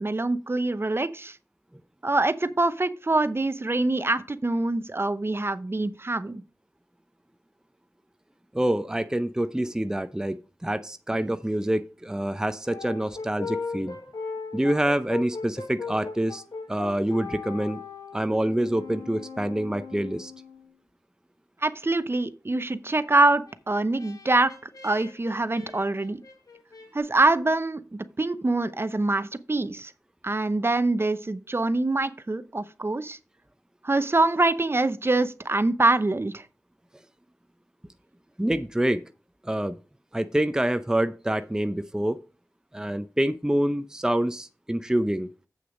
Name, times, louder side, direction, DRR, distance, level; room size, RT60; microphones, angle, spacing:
voice 1, 0.0-1.4 2.0-6.4 21.6-24.5 24.8-26.2 26.9-29.9 30.2-33.2 33.8-36.4, right 2 dB, 40° right, 0.7 m, -24 dB
voice 2, 8.5-10.4 10.6-14.0 14.5-16.4 16.7-17.8 18.1-20.3 38.4-39.0 39.4-39.8 40.1-42.2 42.7-45.3, right 1 dB, 10° right, 0.6 m, -26 dB
Brass instrument, 12.4-20.7 23.2-26.9, left 4 dB, 85° left, 1.5 m, -39 dB
8.0 x 6.2 x 5.1 m
wide cardioid pair, 45°, 6 cm